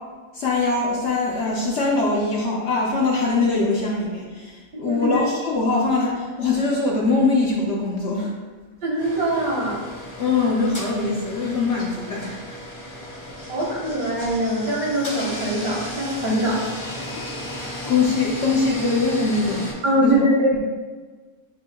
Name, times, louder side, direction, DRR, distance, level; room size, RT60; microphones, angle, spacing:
voice 1, 0.3-8.3 10.2-12.6 17.1-17.2 17.5-19.7 20.0-20.2 20.5-20.6, left 3 dB, 60° left, -3 dB, 0.8 m, -22 dB
voice 2, 4.7-5.2 8.8-9.8 13.5-16.6 19.8-20.6, right 1 dB, 70° right, -4 dB, 1.6 m, -22 dB
sound 1, 9.0-19.7, equal, 15° left, 0.6 m, -35 dB
7.5 x 2.7 x 2.2 m, 1.4 s
omnidirectional pair, 1.6 m